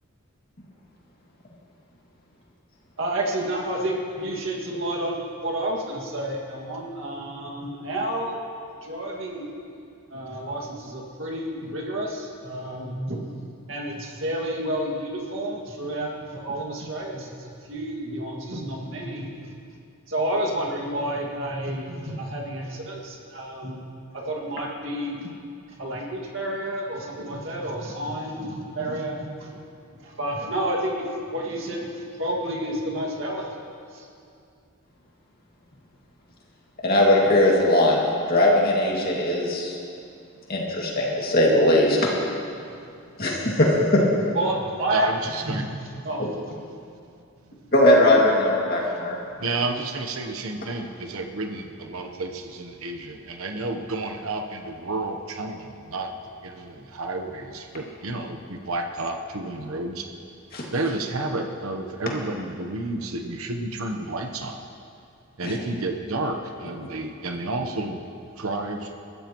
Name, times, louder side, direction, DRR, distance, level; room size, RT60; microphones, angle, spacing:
voice 1, 3.0-8.4 8.8-9.5 10.1-13.4 13.7-19.6 20.1-23.8 24.1-25.3 25.7-29.6 30.0-33.5 33.9-34.1 44.3-45.1 45.4-45.7 46.0-46.6, right 1 dB, 60° right, -1 dB, 2.1 m, -30 dB
voice 2, 36.8-38.0 38.3-39.8 40.5-42.1 43.2-44.0 47.7-49.1 60.5-60.6 65.4-65.5, left 1 dB, 45° left, -3 dB, 2.2 m, -19 dB
voice 3, 44.9-45.7 48.8-48.9 49.4-56.1 56.4-60.1 60.7-64.6 65.4-68.0 68.4-68.9, right 2 dB, 80° right, 4 dB, 1.0 m, -31 dB
21.5 x 13.5 x 3.1 m, 2.5 s
head